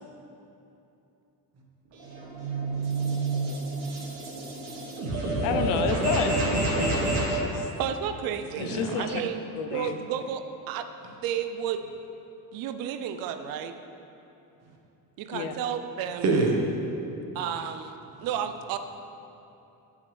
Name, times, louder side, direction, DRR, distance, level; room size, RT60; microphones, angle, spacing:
sound 1, 1.9-7.4, right 2 dB, 90° right, 2.2 m, -29 dB
voice 1, 2.1-3.8 8.6-9.2 16.2-16.5, right 4 dB, 40° right, 0 dB, 1.2 m, -28 dB
voice 2, 5.1-7.7 8.6-9.2 9.5-10.0 15.3-15.5, left 7 dB, 75° left, 7 dB, 0.8 m, -31 dB
voice 3, 7.8-8.7 9.0-9.4 9.7-10.8 11.2-11.8 12.5-13.7 15.2-16.4 17.3-18.8, right 9 dB, 60° right, 9 dB, 0.6 m, -32 dB
11.5 x 7.3 x 3.3 m, 2.9 s
cardioid pair, 175°, 40 cm